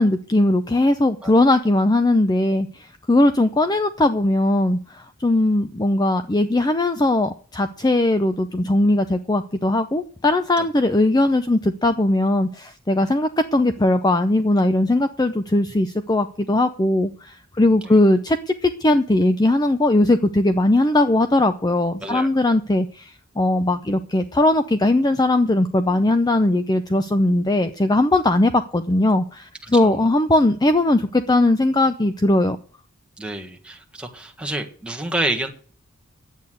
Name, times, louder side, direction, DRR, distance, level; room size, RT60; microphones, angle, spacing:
voice 1, 0.0-32.6, left 2 dB, 20° left, 10 dB, 0.5 m, -19 dB
voice 2, 33.2-35.5, right 1 dB, 5° right, 2 dB, 1.6 m, -28 dB
10.5 x 8.2 x 9.3 m, 0.43 s
head